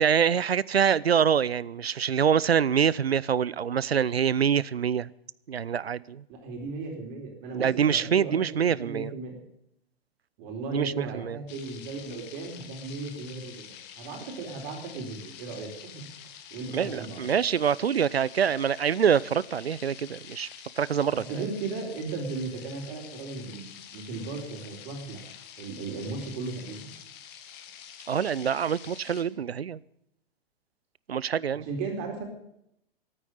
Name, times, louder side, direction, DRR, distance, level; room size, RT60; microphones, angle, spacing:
voice 1, 0.0-5.1 5.5-6.2 7.5-9.1 10.7-11.4 16.7-20.5 20.8-21.4 28.1-29.8 31.1-31.7, right 8 dB, 90° right, 21 dB, 0.5 m, -25 dB
voice 2, 6.3-9.4 10.4-15.9 16.5-17.3 21.1-25.2 25.6-26.9 31.5-32.2, right 3 dB, 45° right, 2 dB, 4.3 m, -36 dB
sound 1, 11.5-29.2, left 9 dB, 35° left, 1.7 m, -47 dB
13.5 x 9.0 x 9.9 m, 0.77 s
figure-of-eight pair, 105°, 30 cm